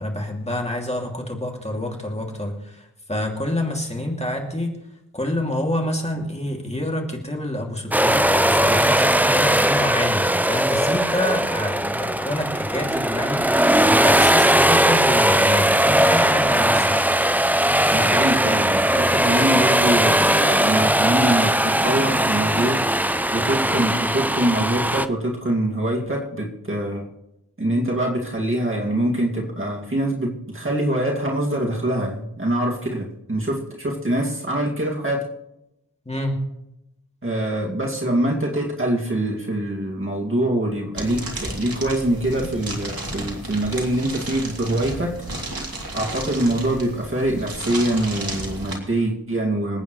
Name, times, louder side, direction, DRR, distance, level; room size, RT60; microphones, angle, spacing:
voice 1, 0.0-4.8 5.1-17.1 36.1-36.4, left 1 dB, 15° left, 0 dB, 2.7 m, -27 dB
sound 1, 7.9-25.1, right 1 dB, 5° right, 0.5 m, -19 dB
voice 2, 17.9-27.1 27.6-35.3 37.2-45.2 45.9-49.8, right 1 dB, 35° right, -1 dB, 2.3 m, -24 dB
sound 2, 41.0-48.8, right 2 dB, 65° right, 3.2 m, -33 dB
27.0 x 9.1 x 3.2 m, 0.87 s
wide cardioid pair, 90°, 38 cm